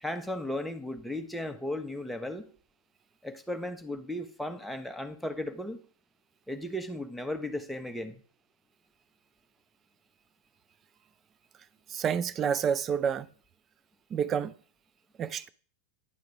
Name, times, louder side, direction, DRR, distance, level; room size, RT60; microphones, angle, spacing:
voice 1, 0.0-2.5 3.2-5.8 6.5-8.2, left 1 dB, ahead, 0.8 m, -35 dB
voice 2, 11.9-13.3 14.1-14.5 15.2-15.5, right 7 dB, 25° right, 0.4 m, -29 dB
9.9 x 3.9 x 4.8 m
figure-of-eight pair, 90°, 0 cm